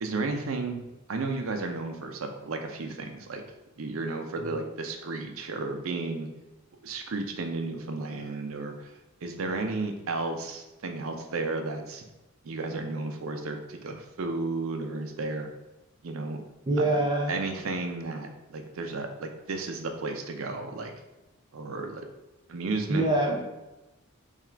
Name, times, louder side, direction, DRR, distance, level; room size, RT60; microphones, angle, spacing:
voice 1, 0.0-3.4 3.8-6.3 6.8-8.9 9.2-12.0 12.4-15.5 16.0-16.4 16.8-17.0 17.3-20.9 21.5-22.1 22.5-23.1, right 3 dB, 80° right, 4 dB, 0.6 m, -33 dB
voice 2, 16.7-17.4 22.9-23.4, right 2 dB, 20° right, -1 dB, 0.5 m, -25 dB
3.6 x 2.4 x 4.3 m, 1.0 s
head